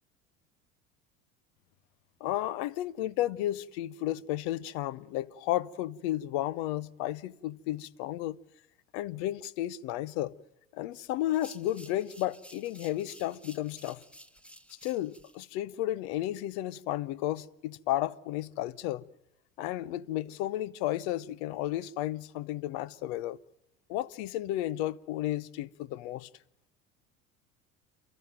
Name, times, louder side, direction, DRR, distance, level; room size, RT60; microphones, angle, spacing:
voice 1, 2.2-8.4 8.9-10.3 10.7-14.0 14.8-19.1 19.6-23.4 23.9-26.3, left 14 dB, 60° left, 0.8 m, -33 dB
sound 1, 11.3-15.4, equal, 5° left, 1.3 m, -53 dB
29.5 x 13.5 x 9.1 m
hypercardioid pair, 70°, 40 cm